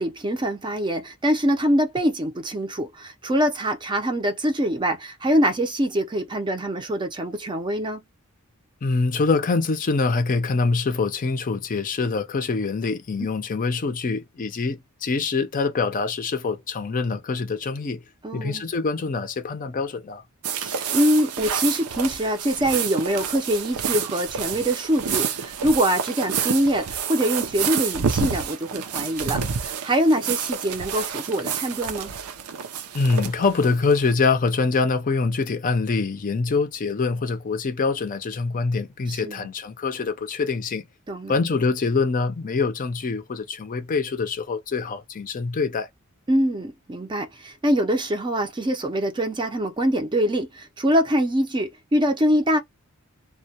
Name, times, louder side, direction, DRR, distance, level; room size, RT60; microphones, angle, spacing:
voice 1, 0.0-8.0 18.2-18.7 20.5-32.1 39.1-39.5 41.1-41.3 46.3-52.6, equal, 20° right, 0.5 m, -24 dB
voice 2, 8.8-18.0 18.3-20.2 32.9-40.8 41.3-45.9, left 4 dB, 40° left, 0.5 m, -24 dB
sound 1, 20.4-34.1, right 7 dB, 85° right, 0.5 m, -29 dB
2.1 x 2.1 x 2.7 m
head